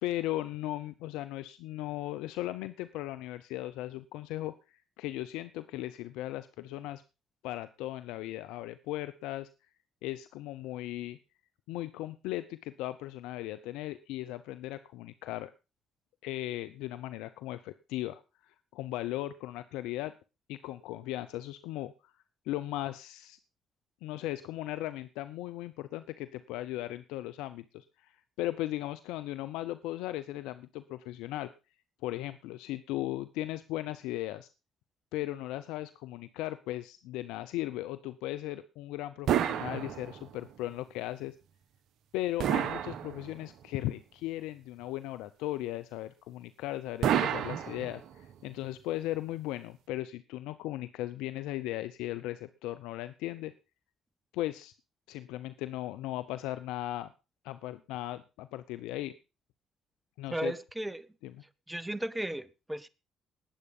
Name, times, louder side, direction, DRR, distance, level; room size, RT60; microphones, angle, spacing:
voice 1, 0.0-4.5 5.0-7.0 7.4-9.5 10.0-11.2 11.7-15.5 16.2-20.1 20.5-22.1 22.5-23.4 24.0-28.1 28.4-31.5 32.0-34.5 35.1-41.3 42.1-53.5 54.3-54.7 55.1-57.1 57.4-59.1 60.2-60.5 61.2-61.3, left 15 dB, 85° left, 0.7 m, -37 dB
sound 1, 39.3-40.5 42.4-43.6 47.0-48.3, right 10 dB, 70° right, 1.4 m, -30 dB
voice 2, 60.3-61.1 61.7-62.9, right 1 dB, 10° right, 1.4 m, -35 dB
19.0 x 8.2 x 5.4 m
supercardioid pair, 55°, 0 cm